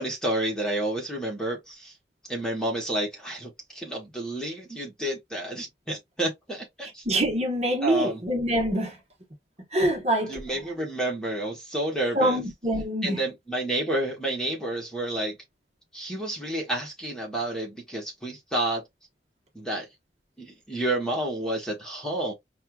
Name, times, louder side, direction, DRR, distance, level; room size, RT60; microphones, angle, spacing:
voice 1, 0.0-1.9 2.2-7.0 7.8-8.2 10.3-12.4 13.0-15.4 15.9-18.8 19.5-19.9 20.4-22.3, right 1 dB, 5° left, 1.2 m, -30 dB
voice 2, 6.8-9.0 9.7-10.4 12.1-13.2, right 1 dB, 35° right, 1.3 m, -25 dB
6.4 x 2.4 x 2.4 m
head